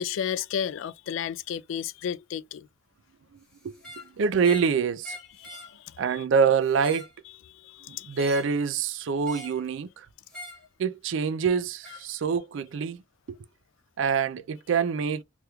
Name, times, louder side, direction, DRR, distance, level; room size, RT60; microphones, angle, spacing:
voice 1, 0.0-2.7 5.4-6.2 7.5-8.2, left 8 dB, 75° left, 0.3 m, -33 dB
voice 2, 3.6-5.2 6.0-7.1 7.9-10.1 10.8-13.0 13.3-13.4 14.0-15.2, right 6 dB, 70° right, 0.4 m, -26 dB
sound 1, 3.7-4.1 4.4-4.7 5.0-5.7 6.6-7.1 8.2-8.6 9.2-9.6 10.3-10.6 11.8-12.0, left 2 dB, 5° left, 1.2 m, -42 dB
3.4 x 3.0 x 2.2 m
head